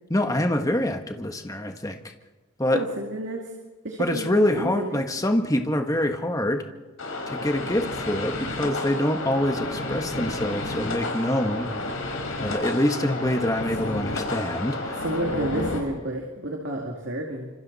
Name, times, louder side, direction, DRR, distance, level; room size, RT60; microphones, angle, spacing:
voice 1, 0.1-2.0 2.6-2.8 4.0-6.6 7.3-11.7 12.4-15.0, left 1 dB, 15° left, 5 dB, 1.4 m, -25 dB
voice 2, 2.7-3.5 3.8-5.0 15.0-17.5, right 1 dB, 60° right, 0 dB, 2.6 m, -30 dB
sound 1, 7.0-15.8, left 2 dB, 85° left, 5.0 m, -31 dB
27.5 x 26.5 x 4.2 m, 1.3 s
head